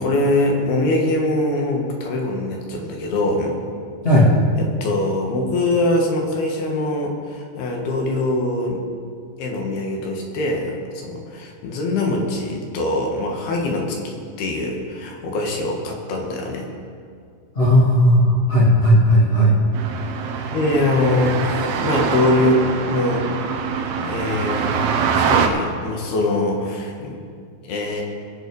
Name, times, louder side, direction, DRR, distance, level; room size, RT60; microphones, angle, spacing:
voice 1, 0.0-3.5 4.6-8.8 9.4-10.7 11.0-16.7 20.5-23.3 23.7-24.8 25.1-27.2 27.6-28.0, left 2 dB, 75° left, 1 dB, 3.5 m, -23 dB
voice 2, 17.5-19.6 20.4-20.5, equal, 90° left, -4 dB, 0.5 m, -15 dB
sound 1, 19.7-25.5, right 6 dB, 80° right, 2.8 m, -23 dB
22.0 x 7.8 x 4.8 m, 2.2 s
omnidirectional pair, 4.7 m